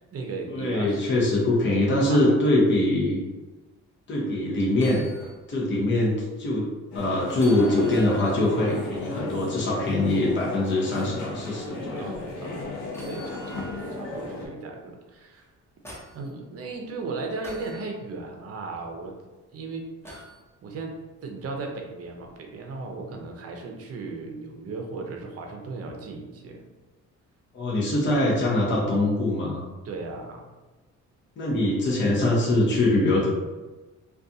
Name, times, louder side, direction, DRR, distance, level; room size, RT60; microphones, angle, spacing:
voice 1, 0.0-1.0 1.9-2.2 2.5-2.6 11.9-15.5 16.1-19.1 19.5-20.3 20.6-21.0 21.2-26.6 29.8-30.5, right 3 dB, 50° right, 2 dB, 0.6 m, -36 dB
voice 2, 0.5-3.2 4.1-5.0 5.5-6.7 6.9-12.2 27.5-29.6 31.4-33.4, left 1 dB, 40° left, -4 dB, 0.7 m, -23 dB
sound 1, 4.7-5.4 5.8-5.9 7.3-8.4 10.9-11.2 12.9-13.9 15.4-16.3 17.4-17.9 20.0-20.4 22.2-22.3, equal, 10° left, 0.8 m, -45 dB
sound 2, 6.9-14.5, left 2 dB, 75° left, 0.7 m, -35 dB
2.4 x 2.3 x 2.6 m, 1.2 s
cardioid pair, 90°, 30 cm